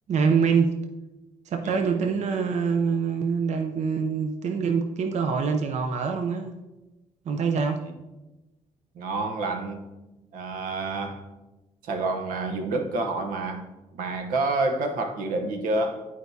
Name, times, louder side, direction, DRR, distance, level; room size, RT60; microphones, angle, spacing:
voice 1, 0.1-0.8 1.5-6.5 7.3-7.8, right 5 dB, 55° right, 6 dB, 0.6 m, -25 dB
voice 2, 8.9-9.9 10.3-11.2 11.8-13.7 13.9-16.1, right 2 dB, 90° right, 5 dB, 0.9 m, -28 dB
11.0 x 4.7 x 2.7 m, 1.0 s
cardioid pair, 95°, 14 cm